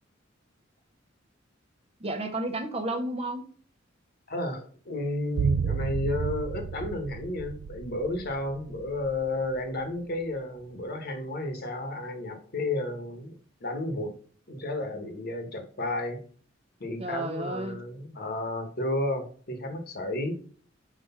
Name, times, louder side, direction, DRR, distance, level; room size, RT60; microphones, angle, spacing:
voice 1, 2.0-3.4 17.0-17.8, right 2 dB, 30° right, 0.8 m, -32 dB
voice 2, 4.3-13.3 13.6-14.2 14.5-16.2 16.8-20.3, left 1 dB, 50° left, 1.3 m, -32 dB
sound 1, 5.4-9.6 9.8-9.9, right 7 dB, 70° right, 0.3 m, -32 dB
6.1 x 3.2 x 5.7 m
head